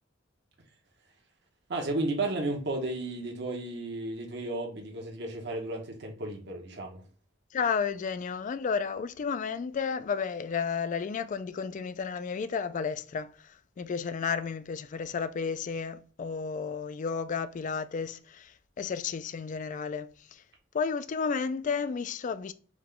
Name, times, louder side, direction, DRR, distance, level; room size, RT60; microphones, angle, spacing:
voice 1, 1.7-7.0, right 2 dB, 60° right, 1.1 m, -33 dB
voice 2, 7.5-13.3 13.8-18.5 18.8-20.1 20.7-22.5, left 5 dB, 40° left, 0.3 m, -32 dB
4.8 x 2.3 x 3.7 m
head